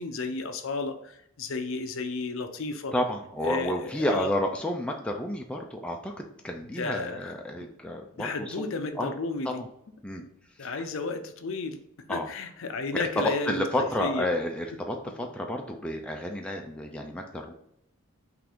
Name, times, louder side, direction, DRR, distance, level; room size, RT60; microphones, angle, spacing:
voice 1, 0.0-2.9 3.4-4.3 6.8-7.3 8.2-9.6 10.6-11.8 12.1-14.3, left 3 dB, 65° left, 7 dB, 0.5 m, -33 dB
voice 2, 2.9-8.6 9.0-9.1 9.4-9.7 10.0-10.2 10.6-10.8 12.1-12.3 13.0-17.5, left 1 dB, 5° left, 1 dB, 0.3 m, -31 dB
5.8 x 2.5 x 3.5 m, 0.77 s
head